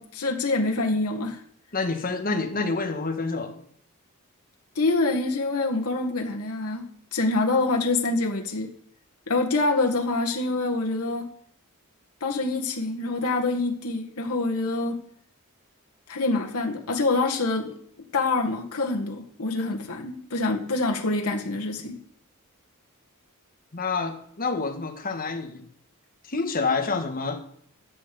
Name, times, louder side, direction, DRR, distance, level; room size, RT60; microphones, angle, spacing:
voice 1, 0.0-1.4 4.8-8.7 9.3-11.3 12.2-15.0 16.1-17.7 18.1-22.0, left 3 dB, 85° left, 1.8 m, -26 dB
voice 2, 1.7-3.6 23.7-25.6 26.3-27.4, left 4 dB, 40° left, 1.7 m, -28 dB
13.0 x 7.6 x 6.9 m
head